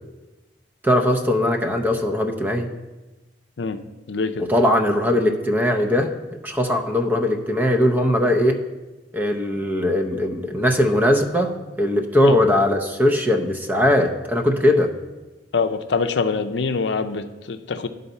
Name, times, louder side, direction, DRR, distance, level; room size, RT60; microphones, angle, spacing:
voice 1, 0.8-2.7 4.4-6.1 6.4-8.6 9.1-14.9, left 1 dB, 10° right, 3 dB, 0.7 m, -20 dB
voice 2, 4.1-4.4 12.2-12.4 15.5-17.9, left 4 dB, 85° left, 8 dB, 0.5 m, -24 dB
11.0 x 4.0 x 5.5 m, 1.1 s
head